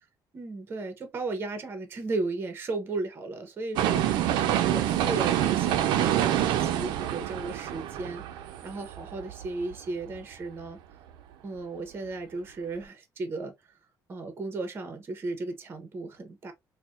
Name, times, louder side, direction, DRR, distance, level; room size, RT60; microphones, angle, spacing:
voice 1, 0.3-10.8 11.4-13.5 14.1-16.5, right 3 dB, 30° right, 0.8 m, -35 dB
sound 1, 3.8-9.8 10.2-10.3, right 11 dB, 90° right, 0.4 m, -27 dB
4.1 x 2.1 x 2.4 m
cardioid pair, 155°, 8 cm